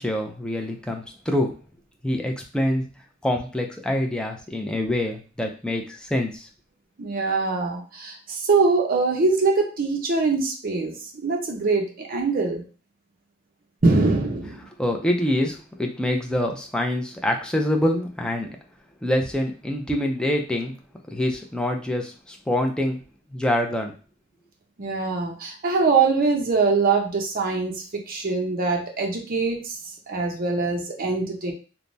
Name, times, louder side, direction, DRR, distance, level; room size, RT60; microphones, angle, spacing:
voice 1, 0.0-1.5 2.0-2.9 3.2-6.5 14.8-18.5 19.0-20.7 21.1-23.0 23.3-23.9, left 1 dB, 5° left, 2 dB, 0.4 m, -25 dB
voice 2, 7.0-10.9 11.2-12.6 13.8-14.7 24.8-29.8 30.1-31.5, right 4 dB, 45° right, 2 dB, 0.6 m, -23 dB
3.3 x 2.0 x 2.6 m, 0.36 s
head